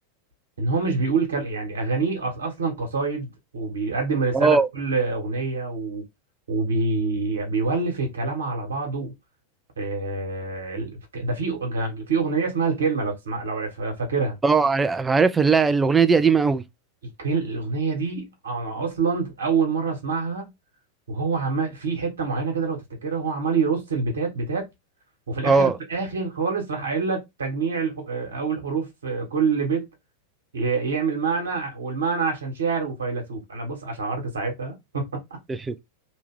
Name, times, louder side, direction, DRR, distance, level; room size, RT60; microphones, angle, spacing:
voice 1, 0.6-6.0 6.5-9.1 9.8-14.3 17.2-20.5 21.1-24.7 25.3-29.9 30.5-35.4, right 4 dB, 70° right, 1.3 m, -26 dB
voice 2, 4.3-4.7 14.4-16.6 25.4-25.7 35.5-35.7, right 5 dB, 15° right, 0.4 m, -19 dB
2.9 x 2.3 x 3.6 m
figure-of-eight pair, 90°, 0 cm